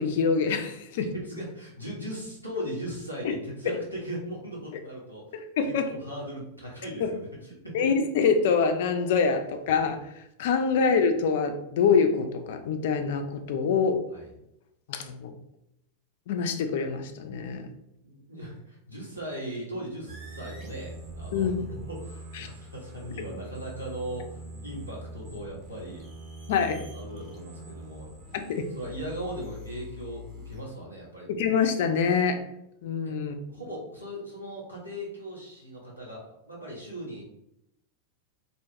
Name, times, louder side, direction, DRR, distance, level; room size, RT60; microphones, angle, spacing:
voice 1, 0.0-1.1 3.2-3.4 3.7-3.8 5.3-5.9 7.0-7.1 7.7-14.0 14.9-15.4 16.3-17.7 21.3-21.5 22.3-22.5 26.5-26.8 28.3-28.7 31.3-32.4 32.8-33.4, left 5 dB, 55° left, 6 dB, 0.3 m, -25 dB
voice 2, 1.1-7.9 14.1-14.3 18.0-26.1 26.9-28.1 28.7-31.3 33.0-33.1 33.5-37.2, equal, 90° right, -5 dB, 0.9 m, -38 dB
sound 1, 20.1-30.6, right 1 dB, 35° right, 0.8 m, -43 dB
2.7 x 2.2 x 2.6 m, 0.82 s
figure-of-eight pair, 90°, 0 cm